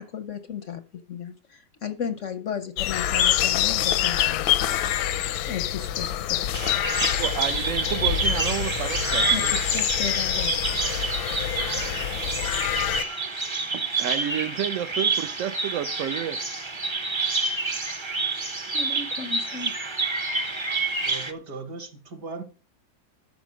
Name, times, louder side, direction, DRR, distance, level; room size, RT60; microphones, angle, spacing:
voice 1, 0.0-4.8 5.5-6.4 9.3-10.5 18.7-19.7, left 7 dB, 65° left, 0.8 m, -35 dB
sound 1, 2.8-13.0, left 11 dB, 85° left, 1.4 m, -26 dB
Bird vocalization bird call bird song, 6.5-21.3, right 3 dB, 25° right, 0.5 m, -28 dB
voice 2, 7.2-9.6 13.7-16.4, right 10 dB, 75° right, 0.7 m, -30 dB
voice 3, 8.9-9.5 21.0-22.4, right 4 dB, 55° right, 2.1 m, -38 dB
13.0 x 5.0 x 6.2 m
omnidirectional pair, 2.1 m